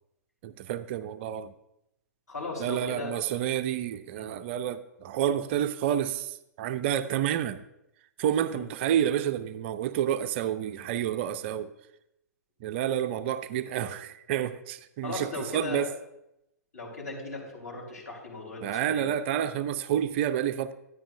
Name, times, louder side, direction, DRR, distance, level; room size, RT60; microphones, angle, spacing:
voice 1, 0.4-1.5 2.6-7.6 8.2-11.7 12.6-15.9 18.6-20.7, right 10 dB, 45° right, 0.5 m, -29 dB
voice 2, 2.3-3.1 4.1-4.3 8.5-8.6 15.0-15.8 16.7-19.1, left 3 dB, 75° left, 4.4 m, -37 dB
12.5 x 9.4 x 2.7 m
figure-of-eight pair, 110°, 9 cm